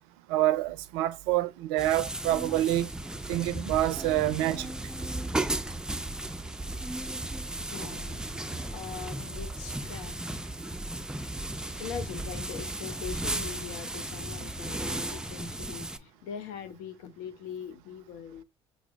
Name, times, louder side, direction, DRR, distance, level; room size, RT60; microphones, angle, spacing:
voice 1, 0.3-2.9 3.3-4.7, right 14 dB, 65° right, 0.5 m, -27 dB
sound 1, 1.8-16.0, right 1 dB, 5° right, 0.4 m, -35 dB
voice 2, 7.6-10.2 11.8-18.4, left 8 dB, 65° left, 0.7 m, -42 dB
6.0 x 2.0 x 3.4 m
figure-of-eight pair, 55°, 13 cm